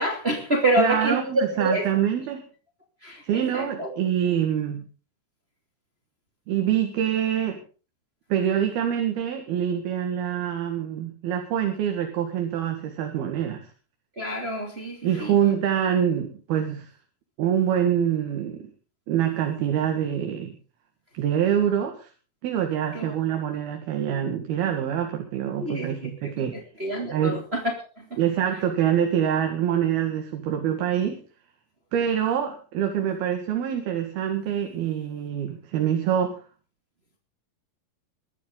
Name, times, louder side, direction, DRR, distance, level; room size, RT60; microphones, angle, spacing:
voice 1, 0.0-1.9 3.0-4.0 14.2-15.4 22.9-23.1 25.6-26.4 26.8-28.2, right 1 dB, 20° right, 2 dB, 2.6 m, -27 dB
voice 2, 0.8-2.4 3.2-4.9 6.5-7.6 8.3-13.6 15.0-16.9 17.4-18.7 19.1-20.6 21.1-22.1 22.4-26.6 27.1-27.4 28.2-31.2 31.9-36.4, right 9 dB, 80° right, 4 dB, 3.8 m, -25 dB
22.0 x 12.5 x 4.0 m, 0.37 s
omnidirectional pair, 4.4 m